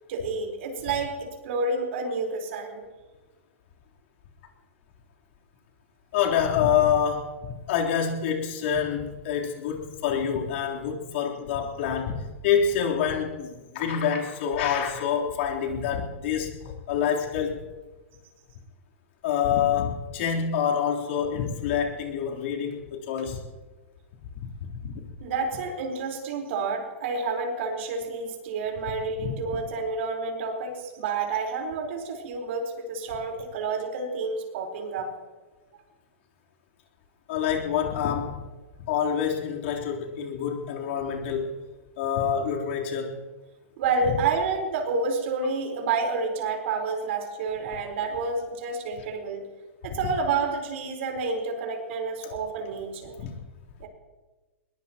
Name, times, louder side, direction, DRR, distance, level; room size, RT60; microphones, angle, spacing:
voice 1, 0.1-2.9 25.2-35.1 43.8-49.4 49.8-53.2 53.8-53.9, right 4 dB, 60° right, 3 dB, 4.4 m, -29 dB
voice 2, 6.1-7.4 7.7-17.6 19.2-23.4 24.7-25.0 29.2-29.3 37.3-38.4 38.9-41.5 42.0-43.2 53.2-53.3, left 8 dB, 60° left, -1 dB, 3.7 m, -27 dB
21.5 x 21.0 x 3.0 m, 1.2 s
hypercardioid pair, 130°, 7 cm